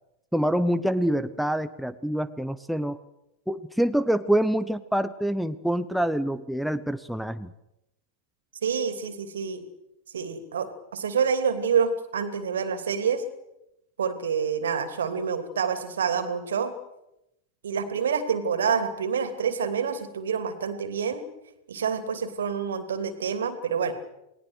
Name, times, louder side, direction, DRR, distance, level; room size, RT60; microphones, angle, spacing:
voice 1, 0.3-3.0 3.5-7.5, right 1 dB, ahead, 11 dB, 1.0 m, -26 dB
voice 2, 8.6-9.6 10.1-13.2 14.0-16.7 17.6-21.2 21.7-23.9, right 6 dB, 65° right, 10 dB, 2.9 m, -27 dB
29.0 x 20.5 x 6.5 m, 0.88 s
figure-of-eight pair, 90°, 0 cm